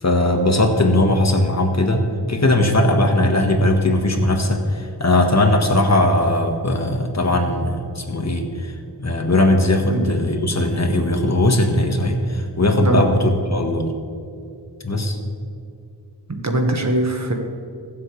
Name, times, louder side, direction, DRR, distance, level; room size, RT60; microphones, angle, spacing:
voice 1, 0.0-13.9 14.8-15.2, left 1 dB, 40° left, 4 dB, 1.5 m, -19 dB
voice 2, 16.3-17.3, right 1 dB, 45° right, 3 dB, 1.7 m, -21 dB
22.5 x 7.6 x 3.4 m, 2.5 s
wide cardioid pair, 55°, 40 cm